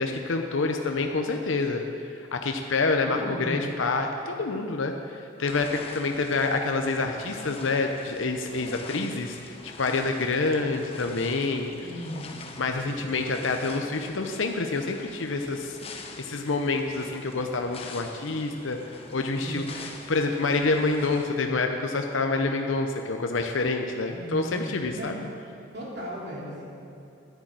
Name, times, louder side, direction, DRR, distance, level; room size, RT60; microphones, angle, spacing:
voice 1, 0.0-1.8 2.2-11.7 12.6-15.8 16.2-18.8 19.1-19.6 20.1-25.2, left 3 dB, 80° left, 4 dB, 0.8 m, -27 dB
voice 2, 3.0-3.8 11.8-12.5 19.4-19.7 24.1-25.3 25.7-26.6, equal, 55° right, -4 dB, 3.3 m, -36 dB
sound 1, 5.4-21.3, left 3 dB, 30° left, 0.9 m, -44 dB
10.5 x 10.5 x 7.4 m, 2.7 s
head